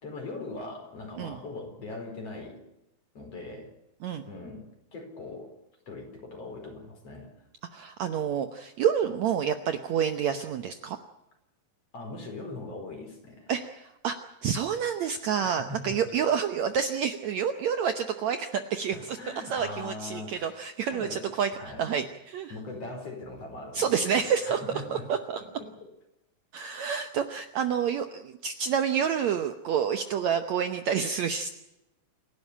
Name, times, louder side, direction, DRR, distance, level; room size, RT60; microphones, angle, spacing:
voice 1, 0.0-2.6 3.1-3.7 4.3-5.5 5.9-7.3 11.9-13.5 15.4-16.0 18.9-20.6 20.9-21.9 22.5-25.1 25.3-25.9, left 2 dB, 45° left, 4 dB, 5.5 m, -41 dB
voice 2, 7.7-11.0 13.5-14.2 14.4-19.2 19.5-21.5 21.8-22.5 23.7-24.6 24.9-25.4 26.5-31.5, right 7 dB, 65° right, 8 dB, 1.9 m, -28 dB
28.0 x 12.0 x 10.0 m, 0.92 s
omnidirectional pair, 4.1 m